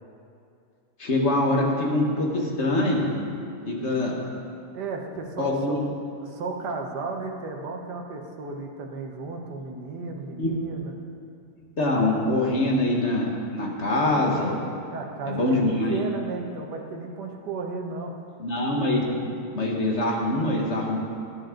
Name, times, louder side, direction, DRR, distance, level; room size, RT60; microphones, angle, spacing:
voice 1, 1.0-3.0 3.7-4.2 5.4-5.8 10.4-10.5 11.8-14.6 15.3-15.9 18.4-19.1 19.5-21.0, left 1 dB, 40° left, -1 dB, 1.9 m, -24 dB
voice 2, 4.7-5.9 6.2-10.9 14.9-15.6 15.9-18.1, right 3 dB, 70° right, 2 dB, 1.7 m, -34 dB
18.5 x 9.5 x 3.9 m, 2.5 s
omnidirectional pair, 1.9 m